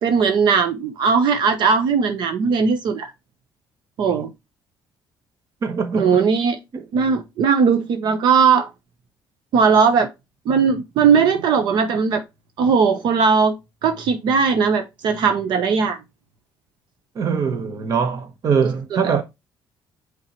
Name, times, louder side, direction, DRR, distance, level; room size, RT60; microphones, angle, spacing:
voice 1, 0.0-3.1 4.0-4.3 5.9-6.6 6.9-8.7 9.5-10.1 10.5-12.2 12.6-13.5 13.8-16.0, right 5 dB, 60° right, 1.0 m, -18 dB
voice 2, 5.6-6.3 6.7-6.8 17.1-19.2, right 6 dB, 45° right, 1.2 m, -22 dB
8.7 x 3.8 x 3.1 m
cardioid pair, 160°, 9 cm